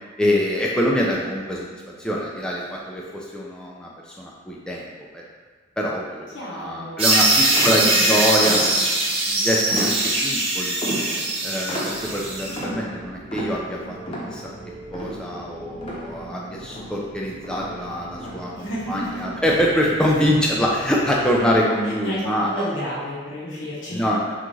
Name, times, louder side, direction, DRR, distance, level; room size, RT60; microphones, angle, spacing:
voice 1, 0.2-4.8 5.1-5.2 5.8-8.9 9.3-10.8 11.4-14.0 14.3-14.4 14.9-22.7 23.9-24.5, equal, 5° left, -4 dB, 0.4 m, -24 dB
voice 2, 6.3-7.1 7.5-8.6 18.5-19.3 21.5-24.1, equal, 85° left, -7 dB, 1.1 m, -32 dB
sound 1, 7.0-12.6, right 2 dB, 30° right, 0.9 m, -21 dB
sound 2, 7.6-9.1 9.7-10.4 10.8-16.4 16.7-18.7 19.1-19.4 19.9-20.4, equal, 30° left, 0.8 m, -34 dB
sound 3, 11.9-21.6, right 1 dB, 90° right, 1.4 m, -41 dB
5.9 x 2.5 x 3.1 m, 1.4 s
head